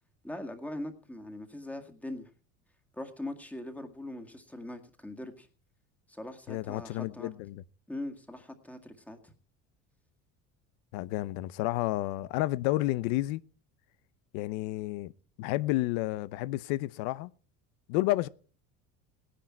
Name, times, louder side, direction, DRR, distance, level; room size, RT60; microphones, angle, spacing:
voice 1, 0.2-2.3 2.9-5.5 6.1-7.3 7.9-9.3, left 1 dB, 5° left, 2.0 m, -41 dB
voice 2, 6.5-7.6 10.9-13.4 14.3-15.1 15.4-17.3 17.9-18.3, left 17 dB, 85° left, 0.8 m, -30 dB
17.5 x 10.0 x 4.5 m
cardioid pair, 130°, 32 cm